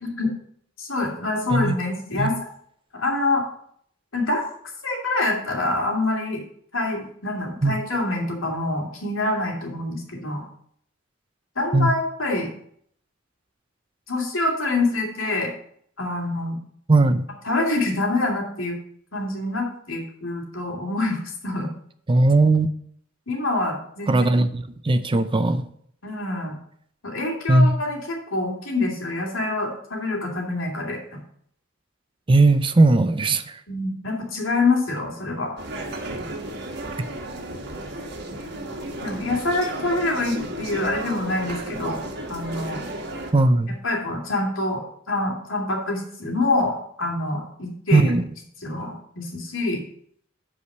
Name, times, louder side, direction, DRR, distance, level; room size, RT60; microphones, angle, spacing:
voice 1, 0.0-0.3 0.8-2.3 2.9-3.4 4.1-4.4 4.8-6.4 6.7-10.4 11.6-12.5 14.1-15.5 16.0-16.6 17.4-18.8 19.1-21.7 23.3-24.4 26.0-26.6 27.0-31.2 33.7-35.6 39.0-42.0 42.3-42.8 43.8-48.1 48.6-49.8, left 2 dB, 90° left, 0 dB, 2.7 m, -26 dB
voice 2, 16.9-17.3 22.1-22.7 24.1-25.6 27.5-27.8 32.3-33.6 43.3-43.8 47.9-48.2, right 2 dB, 25° right, 11 dB, 0.5 m, -18 dB
sound 1, 35.6-43.3, right 1 dB, 55° right, 1.5 m, -33 dB
8.3 x 5.0 x 6.7 m, 0.64 s
head